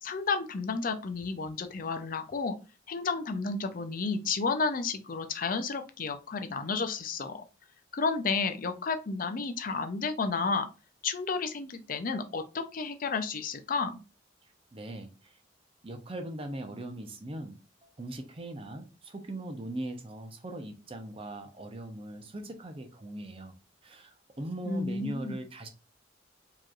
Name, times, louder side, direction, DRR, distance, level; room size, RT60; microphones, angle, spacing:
voice 1, 0.0-2.6 2.9-7.4 7.9-10.7 11.0-14.0 24.7-25.4, left 4 dB, 45° left, 8 dB, 0.5 m, -31 dB
voice 2, 14.7-15.4 15.8-17.6 18.0-23.6 23.8-25.7, right 1 dB, 30° right, 6 dB, 0.6 m, -40 dB
4.8 x 3.0 x 2.4 m, 0.30 s
head